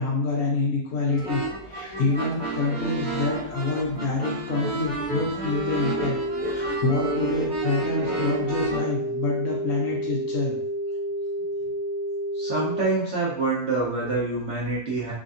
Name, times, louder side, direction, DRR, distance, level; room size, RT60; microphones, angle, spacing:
voice 1, 0.0-10.6, left 3 dB, 65° left, -3 dB, 1.0 m, -27 dB
sound 1, 1.1-8.8, right 2 dB, 35° right, 1.3 m, -31 dB
sound 2, 5.4-12.8, right 1 dB, 80° right, 0.4 m, -30 dB
voice 2, 12.3-15.1, right 3 dB, 60° right, -6 dB, 0.9 m, -26 dB
3.4 x 2.1 x 2.5 m, 0.67 s
omnidirectional pair, 1.7 m